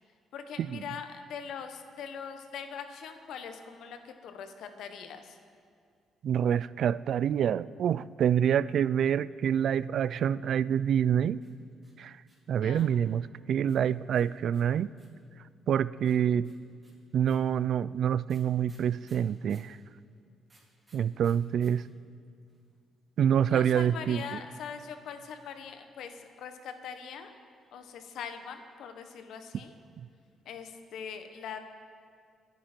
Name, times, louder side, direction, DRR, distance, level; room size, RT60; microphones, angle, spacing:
voice 1, 0.3-5.4 12.6-13.0 23.5-27.3 27.7-29.7 30.4-31.6, left 7 dB, 80° left, 7 dB, 1.2 m, -42 dB
voice 2, 6.2-11.4 12.0-12.1 12.5-14.9 15.7-16.5 17.1-19.8 20.9-21.8 23.2-24.2, right 9 dB, 65° right, 18 dB, 0.3 m, -26 dB
sound 1, 11.3-13.0 13.7-15.3 16.0-19.7 20.5-21.7 22.0-22.1 22.2-22.7, right 2 dB, 25° right, 4.2 m, -63 dB
25.5 x 9.3 x 4.5 m, 2.3 s
cardioid pair, 90°, 0 cm